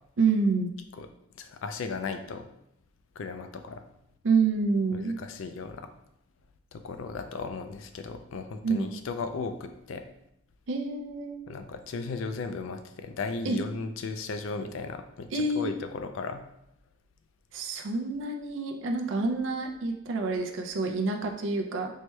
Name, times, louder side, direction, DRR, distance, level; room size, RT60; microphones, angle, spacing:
voice 1, 0.2-0.7 4.2-5.2 8.6-8.9 10.7-11.4 13.4-13.6 15.3-15.7 17.5-21.9, right 4 dB, 70° right, 3 dB, 0.4 m, -27 dB
voice 2, 1.4-2.5 3.2-3.8 4.9-5.9 6.7-10.0 11.5-16.4, left 4 dB, 75° left, 8 dB, 0.4 m, -36 dB
4.4 x 2.2 x 3.0 m, 0.78 s
head